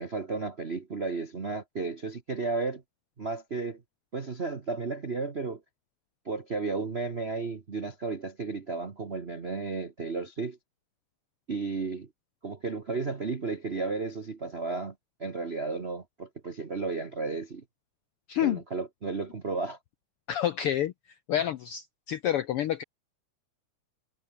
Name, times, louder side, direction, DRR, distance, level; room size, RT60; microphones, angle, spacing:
voice 1, 0.0-2.8 3.2-3.8 4.1-5.6 6.2-10.6 11.5-12.1 12.4-14.9 15.2-17.6 18.4-19.8, right 4 dB, 85° right, 0.5 m, -33 dB
voice 2, 18.3-18.6 20.3-20.9 21.3-22.8, left 11 dB, 75° left, 1.3 m, -28 dB
omnidirectional pair, 3.5 m